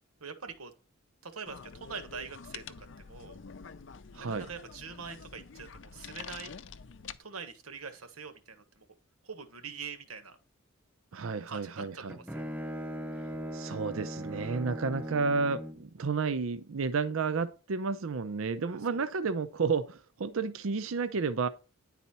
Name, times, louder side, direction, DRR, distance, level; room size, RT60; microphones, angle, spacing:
voice 1, 0.2-0.7 1.2-3.4 4.1-6.5 7.2-8.9 9.2-10.4 11.5-12.4 14.3-14.7 18.6-19.1, right 5 dB, 85° right, 1.3 m, -44 dB
sound 1, 1.5-7.2, left 6 dB, 55° left, 0.5 m, -47 dB
voice 2, 4.1-4.5 11.1-12.2 13.5-21.5, right 4 dB, 70° right, 0.5 m, -31 dB
Bowed string instrument, 11.8-15.9, equal, 5° right, 0.4 m, -39 dB
10.0 x 4.2 x 4.2 m
head